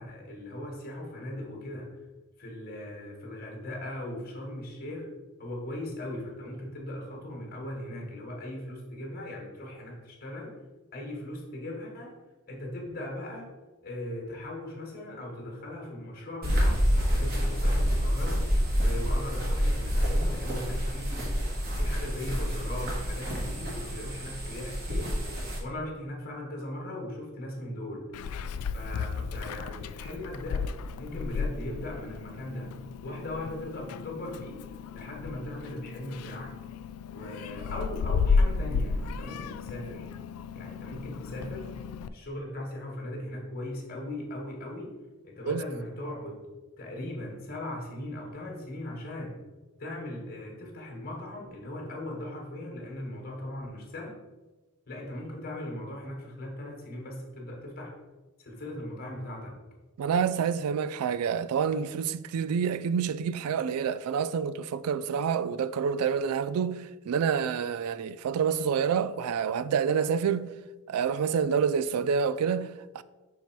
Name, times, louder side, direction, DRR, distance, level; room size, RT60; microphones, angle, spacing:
voice 1, 0.0-2.0 2.4-5.1 5.4-10.6 10.9-12.2 12.5-13.5 13.8-16.9 17.1-18.4 18.8-25.2 25.6-28.1 28.7-32.8 33.0-34.6 34.9-36.5 37.1-40.1 40.5-41.7 42.1-45.0 45.2-46.4 46.8-49.4 49.8-54.2 54.9-58.0 58.4-59.6, left 1 dB, 45° left, 1.5 m, -39 dB
sound 1, 16.4-25.6, equal, 45° right, 1.6 m, -28 dB
Meow, 28.1-42.1, left 5 dB, 75° left, 0.3 m, -33 dB
voice 2, 60.0-70.5 70.9-73.0, right 7 dB, 85° right, 0.3 m, -28 dB
5.4 x 4.5 x 4.5 m
head